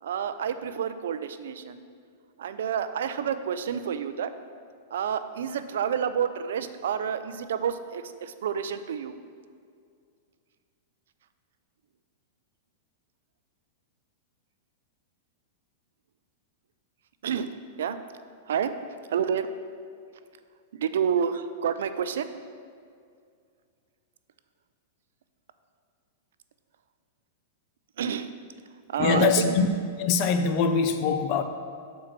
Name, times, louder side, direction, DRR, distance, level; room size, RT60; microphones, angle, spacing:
voice 1, 0.0-1.8 2.4-4.3 4.9-9.2 17.2-17.5 17.8-18.0 18.5-18.7 19.1-19.5 20.7-22.3 28.0-28.3 28.9-29.5, right 8 dB, 80° right, 11 dB, 0.4 m, -29 dB
voice 2, 29.0-29.7 30.0-31.4, left 5 dB, 35° left, 8 dB, 0.5 m, -23 dB
7.6 x 4.5 x 5.9 m, 2.2 s
supercardioid pair, 170°, 0 cm